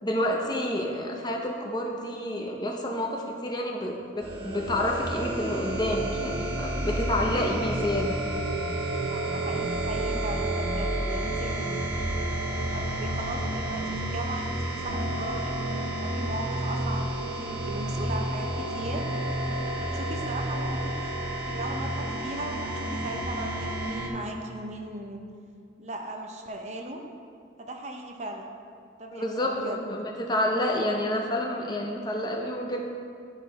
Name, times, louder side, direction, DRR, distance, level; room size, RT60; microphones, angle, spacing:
voice 1, 0.0-8.2 29.1-32.8, left 1 dB, 20° left, 0 dB, 0.7 m, -29 dB
sound 1, 4.2-24.1, right 1 dB, 65° right, 1.2 m, -30 dB
voice 2, 9.1-11.8 12.6-19.1 19.7-21.2 21.4-25.2 25.8-27.0 27.6-28.5 29.0-29.8, right 1 dB, 35° right, 3 dB, 0.6 m, -37 dB
10.5 x 4.7 x 4.0 m, 2.3 s
head